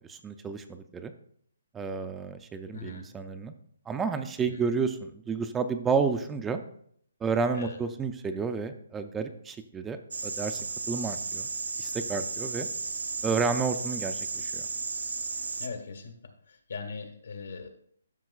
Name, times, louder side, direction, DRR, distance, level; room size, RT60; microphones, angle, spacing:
voice 1, 0.1-1.1 1.7-3.5 3.9-6.6 7.2-10.6 10.9-11.5 11.8-12.7 13.2-14.6, right 5 dB, 10° right, 8 dB, 0.4 m, -31 dB
voice 2, 2.7-3.1 4.4-4.6 7.5-7.8 13.3-13.5 15.6-16.1 16.5-17.7, left 4 dB, 80° left, 5 dB, 1.6 m, -40 dB
sound 1, 10.1-15.7, right 4 dB, 85° right, 0.7 m, -34 dB
12.0 x 6.0 x 2.4 m, 0.64 s
hypercardioid pair, 150°, 0 cm